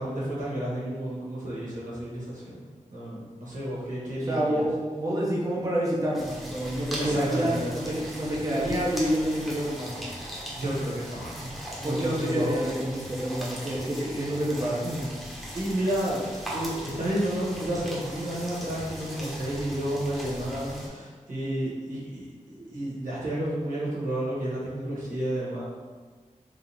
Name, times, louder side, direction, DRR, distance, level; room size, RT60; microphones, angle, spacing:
voice 1, 0.0-2.6 2.9-4.6 7.0-7.7 10.3-12.7 14.8-15.1 15.5-16.2 16.5-25.6, right 1 dB, 80° right, -8 dB, 1.4 m, -31 dB
voice 2, 4.3-10.0 11.8-14.9, equal, 25° right, -5 dB, 0.8 m, -28 dB
sound 1, 6.1-20.9, equal, ahead, 1.0 m, -39 dB
3.6 x 2.8 x 3.4 m, 1.4 s
wide cardioid pair, 75°, 13 cm